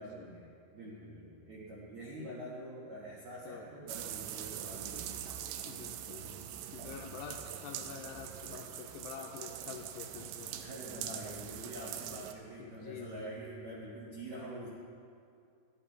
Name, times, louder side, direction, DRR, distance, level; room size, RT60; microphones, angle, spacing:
voice 1, 0.0-5.2 10.6-14.7, right 1 dB, 70° right, -6 dB, 1.7 m, -46 dB
voice 2, 2.1-2.6 3.5-3.7 5.6-6.4 6.7-10.6 12.6-13.4, left 7 dB, 85° left, 2 dB, 2.5 m, -47 dB
sound 1, 3.9-12.3, right 10 dB, 90° right, 3.1 m, -43 dB
14.0 x 11.0 x 4.5 m, 2.4 s
omnidirectional pair, 5.4 m